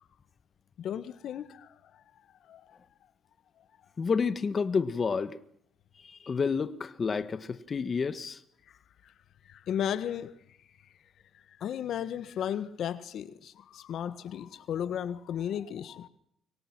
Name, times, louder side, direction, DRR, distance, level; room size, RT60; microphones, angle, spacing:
voice 1, 0.8-1.7 2.5-2.7 9.0-9.1 9.5-10.3 11.6-16.1, left 9 dB, 70° left, 1.5 m, -34 dB
voice 2, 4.0-5.4 6.0-8.4, left 5 dB, 40° left, 1.6 m, -29 dB
29.5 x 24.5 x 6.2 m
cardioid pair, 90°, 0 cm